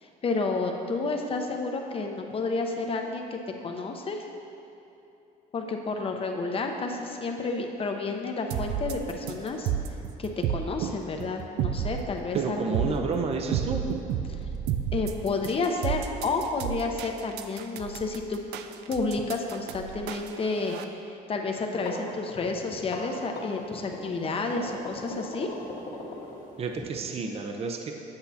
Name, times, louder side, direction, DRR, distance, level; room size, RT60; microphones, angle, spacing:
voice 1, 0.0-4.2 5.5-9.7 10.2-13.1 14.3-14.4 14.9-18.4 18.9-20.8 21.1-25.5, left 3 dB, 35° left, 3 dB, 0.7 m, -30 dB
sound 1, 8.5-20.8, right 9 dB, 85° right, 0.4 m, -31 dB
voice 2, 12.3-13.9 26.6-27.9, right 4 dB, 35° right, 3 dB, 0.6 m, -30 dB
sound 2, 21.6-26.8, left 2 dB, 60° left, 1.5 m, -39 dB
8.0 x 8.0 x 2.8 m, 2.9 s
cardioid pair, 110°, 17 cm